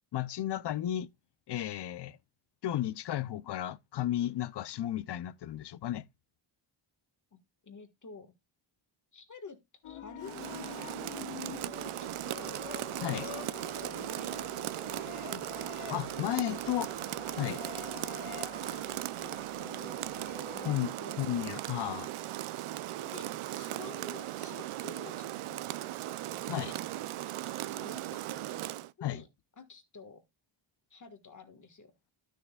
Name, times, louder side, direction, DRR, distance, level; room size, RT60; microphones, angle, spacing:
voice 1, 0.1-1.1 1.5-2.2 2.6-6.1 13.0-13.3 15.3-15.4 15.9-16.9 17.3-17.6 20.6-22.1 26.5-26.7 29.0-29.2, left 12 dB, 55° left, 0.6 m, -33 dB
voice 2, 7.6-8.3 9.1-9.6 9.8-11.1 11.5-12.6 13.0-15.3 17.9-20.0 20.5-21.2 23.0-25.7 26.3-26.7 27.7-28.6 29.0-29.3 29.6-30.2 30.9-32.1, left 4 dB, 35° left, 1.6 m, -51 dB
sound 1, 9.8-20.8, left 12 dB, 90° left, 0.8 m, -47 dB
Rain, 10.2-28.9, right 14 dB, 80° right, 0.6 m, -38 dB
12.0 x 6.4 x 2.3 m
cardioid pair, 90°, 49 cm